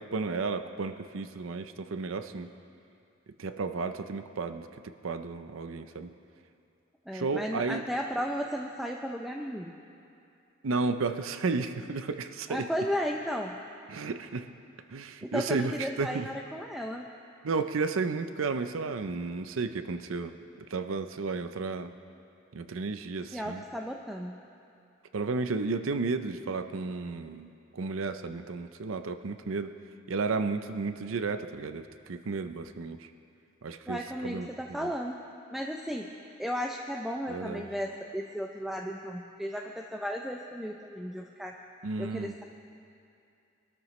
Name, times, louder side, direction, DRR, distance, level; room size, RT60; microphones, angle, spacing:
voice 1, 0.0-2.5 3.4-6.1 7.1-7.9 10.6-12.7 13.9-14.5 14.9-16.3 17.4-20.3 20.7-21.9 22.5-23.6 25.1-29.7 30.1-33.1 33.6-34.9 37.3-37.7 41.8-42.3, right 4 dB, 75° right, 9 dB, 0.6 m, -33 dB
voice 2, 7.1-9.8 12.5-13.6 15.2-17.1 23.3-24.4 33.9-35.2 35.5-36.1 36.4-41.6 42.0-42.4, equal, ahead, 1 dB, 0.5 m, -34 dB
23.5 x 13.0 x 3.2 m, 2.6 s
head